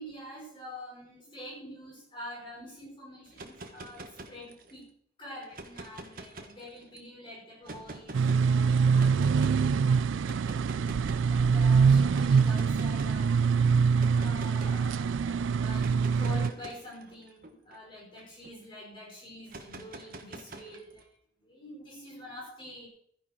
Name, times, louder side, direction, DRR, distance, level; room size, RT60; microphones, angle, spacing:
voice 1, 0.0-4.9 5.2-10.8 11.3-13.3 14.1-21.1 21.4-22.9, left 1 dB, 25° left, -5 dB, 5.3 m, -46 dB
sound 1, 3.3-4.8 5.4-7.0 7.6-8.4 9.0-9.6 10.2-11.3 12.1-13.2 14.0-14.8 15.7-18.5 19.5-21.0, right 2 dB, 50° right, 1.5 m, -45 dB
sound 2, 8.1-16.5, right 5 dB, 90° right, 0.4 m, -24 dB
13.5 x 10.0 x 4.5 m, 0.65 s
head